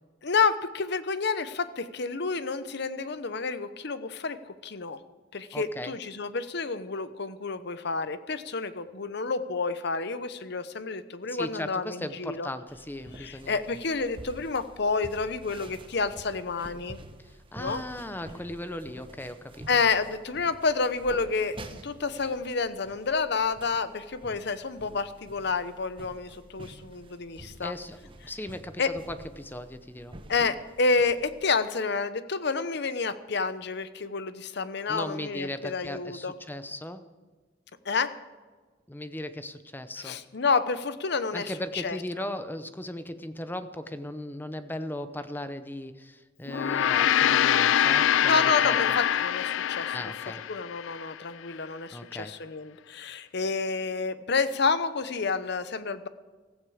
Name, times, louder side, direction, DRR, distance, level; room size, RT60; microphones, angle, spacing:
voice 1, 0.2-5.0 5.3-12.5 13.1-17.0 17.6-17.8 19.7-27.7 28.8-28.9 30.3-36.3 37.8-38.1 40.0-42.0 48.2-50.1 50.5-56.1, left 4 dB, 60° left, 13 dB, 0.9 m, -29 dB
voice 2, 5.5-6.0 11.3-13.6 17.2-19.7 27.6-28.8 29.1-30.2 34.9-37.0 38.9-40.2 41.3-49.0 49.9-50.4 51.9-52.3, left 1 dB, 10° left, 11 dB, 0.7 m, -37 dB
sound 1, 12.7-31.4, right 1 dB, 25° right, 1.1 m, -48 dB
Gong, 46.5-51.1, left 10 dB, 85° left, 0.4 m, -24 dB
16.0 x 14.5 x 4.9 m, 1.4 s
head